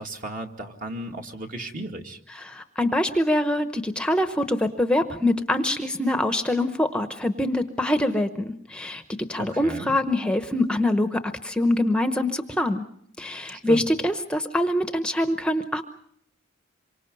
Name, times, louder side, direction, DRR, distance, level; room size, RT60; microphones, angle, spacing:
voice 1, 0.0-2.2 9.4-9.9 13.7-13.8, right 1 dB, 45° right, 3 dB, 2.2 m, -35 dB
voice 2, 2.4-9.0 9.3-12.8 13.2-15.8, left 1 dB, 5° left, 8 dB, 0.9 m, -24 dB
27.0 x 24.5 x 5.4 m, 0.70 s
head